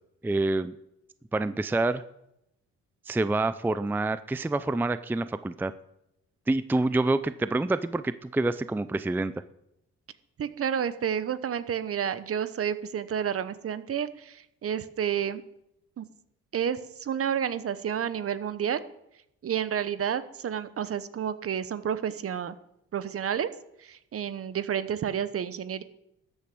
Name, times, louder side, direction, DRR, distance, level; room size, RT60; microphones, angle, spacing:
voice 1, 0.2-0.7 1.3-2.0 3.1-5.7 6.5-9.3, right 2 dB, 5° right, 14 dB, 0.5 m, -27 dB
voice 2, 10.4-15.4 16.0-16.1 16.5-18.8 19.4-22.6 22.9-23.5 23.8-25.8, right 8 dB, 50° right, 14 dB, 0.9 m, -30 dB
13.0 x 8.6 x 6.2 m, 0.81 s
cardioid pair, 90°, 30 cm